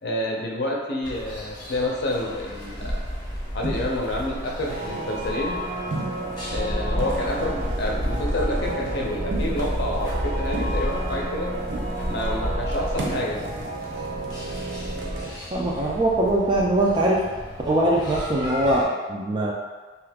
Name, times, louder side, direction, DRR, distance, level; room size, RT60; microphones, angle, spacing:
voice 1, 0.0-3.1 3.5-5.6 6.5-11.5 12.1-13.5, left 1 dB, 65° left, -2 dB, 0.6 m, -28 dB
sound 1, 1.0-18.8, equal, 25° left, 0.8 m, -32 dB
sound 2, 2.8-3.1 3.6-4.3 4.8-5.5 5.9-6.5 7.0-9.0 9.3-10.0 10.5-11.4 11.7-12.3 12.7-15.3, right 2 dB, 85° right, 0.5 m, -37 dB
sound 3, 4.6-15.3, right 2 dB, 50° right, 0.7 m, -33 dB
voice 2, 15.5-17.2 17.7-19.5, right 1 dB, 25° right, -3 dB, 0.3 m, -22 dB
2.7 x 2.4 x 3.4 m, 1.3 s
head